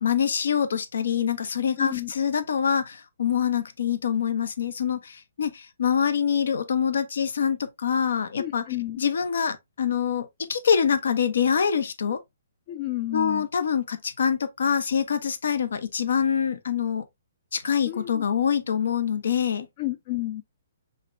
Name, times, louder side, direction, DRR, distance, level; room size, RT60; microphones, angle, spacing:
voice 1, 0.0-8.6 9.0-12.2 13.1-17.0 17.5-19.7, left 7 dB, 75° left, 0.8 m, -25 dB
voice 2, 1.8-2.1 8.4-9.0 12.7-13.5 17.9-18.2 19.8-20.4, left 16 dB, 40° left, 0.5 m, -31 dB
5.0 x 3.3 x 2.6 m
hypercardioid pair, 145°, 0 cm